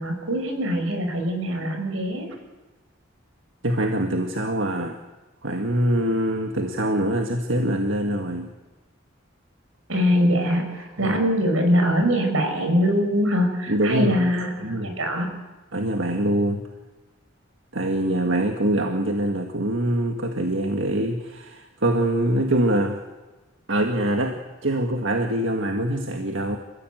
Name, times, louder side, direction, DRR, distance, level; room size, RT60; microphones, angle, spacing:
voice 1, 0.0-2.3 9.9-15.3, equal, 85° right, 4 dB, 5.7 m, -23 dB
voice 2, 3.6-5.0 5.4-8.5 11.0-11.2 13.7-14.3 14.6-15.0 15.7-16.6 17.7-23.0 23.7-26.6, right 1 dB, 65° right, 4 dB, 1.8 m, -24 dB
29.5 x 15.5 x 8.0 m, 1.2 s
head